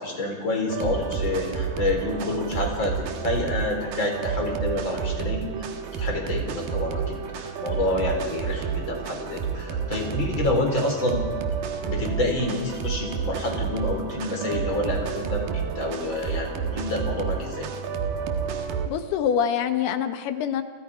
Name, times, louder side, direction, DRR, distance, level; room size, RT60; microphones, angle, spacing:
voice 1, 0.0-11.2 11.8-17.7, left 2 dB, 30° left, 2 dB, 4.8 m, -28 dB
sound 1, 0.7-18.9, right 6 dB, 65° right, 3.0 m, -30 dB
voice 2, 18.9-20.6, left 8 dB, 75° left, 9 dB, 3.1 m, -25 dB
30.0 x 27.5 x 5.1 m, 1.4 s
omnidirectional pair, 4.7 m